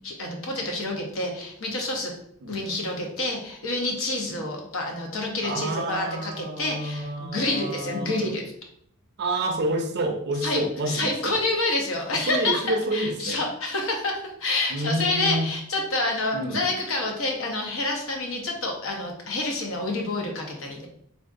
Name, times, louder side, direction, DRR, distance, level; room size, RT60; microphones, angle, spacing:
voice 1, 0.0-2.1 2.5-8.5 10.4-10.6 10.9-20.9, left 2 dB, 65° left, 1 dB, 0.8 m, -28 dB
voice 2, 5.4-8.3 9.2-11.4 12.1-13.4 14.7-15.5 16.3-16.7, right 1 dB, 50° right, 5 dB, 0.5 m, -29 dB
3.5 x 2.5 x 2.5 m, 0.68 s
head